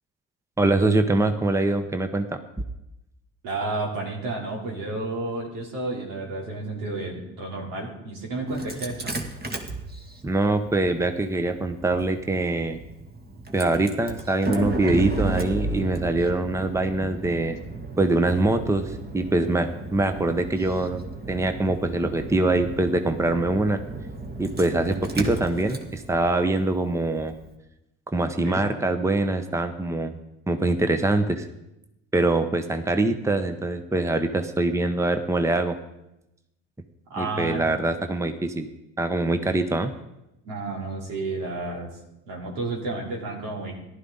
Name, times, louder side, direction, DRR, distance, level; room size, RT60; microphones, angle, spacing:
voice 1, 0.6-2.4 10.2-12.8 13.5-17.6 18.0-23.8 24.4-27.3 28.1-30.2 30.5-31.5 32.1-35.8 37.2-38.7 39.0-39.9, right 2 dB, 10° right, 8 dB, 0.9 m, -24 dB
voice 2, 3.4-9.2 28.4-28.6 37.1-37.7 40.4-41.9 42.3-43.7, right 2 dB, 80° right, -1 dB, 3.2 m, -31 dB
Engine starting, 8.5-27.4, right 2 dB, 25° right, 1.9 m, -34 dB
14.5 x 11.5 x 4.0 m, 0.89 s
hypercardioid pair, 70°, 35 cm